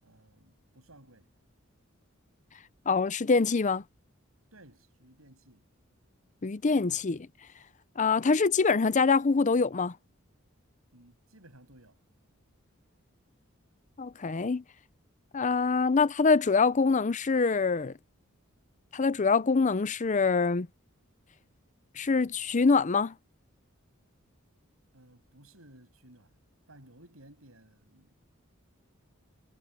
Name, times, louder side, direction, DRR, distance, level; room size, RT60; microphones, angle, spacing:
voice 1, 0.0-1.3 4.5-5.6 10.9-12.0 24.9-26.3 26.7-28.1, right 1 dB, 85° right, 7.4 m, -56 dB
voice 2, 2.9-3.8 6.4-7.3 8.0-9.9 14.0-14.6 15.3-17.9 18.9-20.7 22.0-23.1, left 4 dB, 35° left, 0.6 m, -25 dB
head